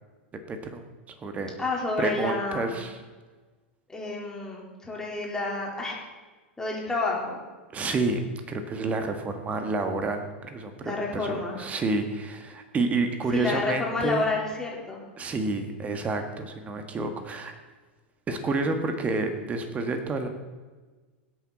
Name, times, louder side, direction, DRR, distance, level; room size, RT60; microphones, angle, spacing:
voice 1, 0.5-0.8 1.2-1.5 2.0-3.0 7.7-14.3 15.2-17.5 18.3-20.3, right 3 dB, 20° right, 6 dB, 1.7 m, -29 dB
voice 2, 1.6-2.8 3.9-6.0 6.6-7.4 10.8-11.7 13.3-15.0, left 3 dB, 10° left, -3 dB, 4.1 m, -30 dB
20.5 x 8.6 x 4.2 m, 1.3 s
figure-of-eight pair, 95°, 6 cm